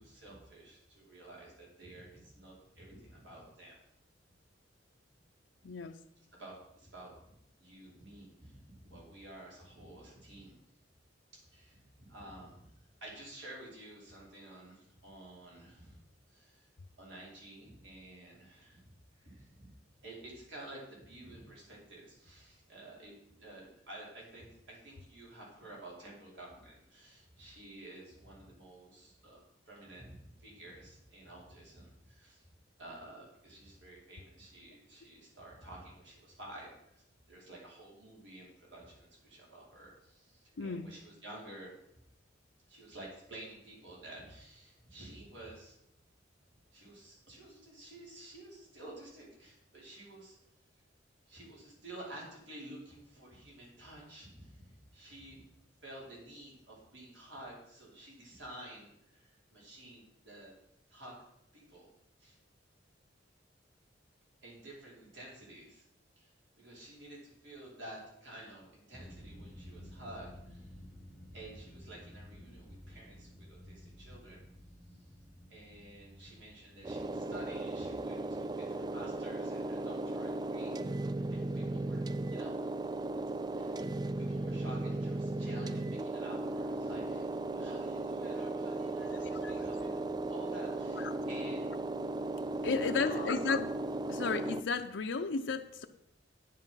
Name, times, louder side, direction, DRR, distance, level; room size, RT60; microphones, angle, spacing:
voice 1, 0.0-3.8 6.2-7.3 7.6-10.6 11.3-12.6 13.0-16.0 16.3-16.7 17.0-19.7 20.0-29.4 29.7-32.5 32.8-37.0 37.3-41.7 42.7-45.8 46.7-50.4 51.3-55.4 55.8-60.5 60.9-61.2 61.5-61.9 62.2-62.4 64.4-65.9 66.2-70.7 71.3-74.4 74.9-75.0 75.5-80.7 81.3-82.0 82.3-82.5 83.6-83.8 84.2-91.7 92.8-93.3, right 1 dB, 70° right, -3 dB, 4.5 m, -51 dB
voice 2, 5.6-5.9 40.6-40.9 89.1-89.5 92.6-93.7 94.1-95.9, left 4 dB, 75° left, 5 dB, 0.6 m, -33 dB
sound 1, 68.9-79.2, equal, ahead, 0.7 m, -53 dB
sound 2, 76.8-94.6, right 2 dB, 20° right, 0.3 m, -36 dB
9.8 x 7.5 x 5.7 m, 0.79 s
head